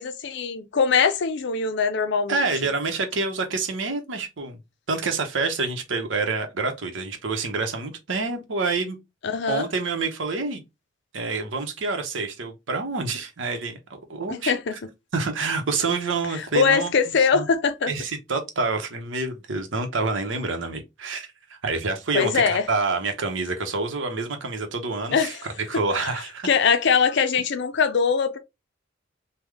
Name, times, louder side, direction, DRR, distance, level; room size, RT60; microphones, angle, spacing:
voice 1, 0.0-2.5 9.2-9.7 14.3-14.7 16.3-17.9 22.1-22.7 25.1-25.5 26.0-26.1 26.4-28.4, left 6 dB, 65° left, 0.5 m, -22 dB
voice 2, 2.3-4.6 4.9-9.0 9.5-10.6 11.1-14.5 15.1-16.9 17.3-17.4 17.9-25.4 25.7-26.5, right 3 dB, 90° right, 0.9 m, -27 dB
3.4 x 2.2 x 3.4 m
head